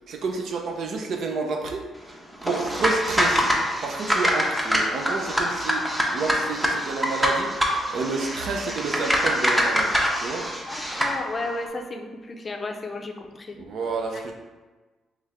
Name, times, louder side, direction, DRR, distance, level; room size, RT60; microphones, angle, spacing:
voice 1, 0.1-1.9 2.4-3.5 3.8-10.5 13.5-14.3, right 4 dB, 65° right, 2 dB, 0.5 m, -30 dB
sound 1, 2.3-11.7, right 1 dB, 40° right, 0.8 m, -39 dB
sound 2, 2.4-11.2, equal, 5° right, 0.7 m, -25 dB
voice 2, 10.7-13.6 14.1-14.2, left 2 dB, 30° left, 3 dB, 0.5 m, -33 dB
3.2 x 3.2 x 3.6 m, 1.2 s
cardioid pair, 90°, 0 cm